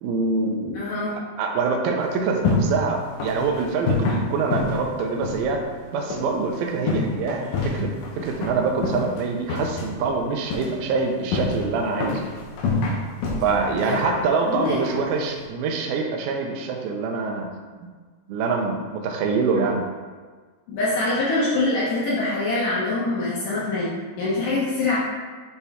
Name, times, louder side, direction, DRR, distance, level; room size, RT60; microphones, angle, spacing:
voice 1, 0.0-0.8 1.1-5.6 5.9-12.3 13.4-17.5 17.8-17.9 18.3-19.8, right 4 dB, 80° right, 1 dB, 2.3 m, -25 dB
voice 2, 0.7-1.2 13.8-14.8 20.7-25.0, left 2 dB, 65° left, -8 dB, 2.3 m, -25 dB
sound 1, 2.0-15.5, left 3 dB, 80° left, 1.9 m, -29 dB
7.0 x 4.3 x 3.5 m, 1.5 s
omnidirectional pair, 4.9 m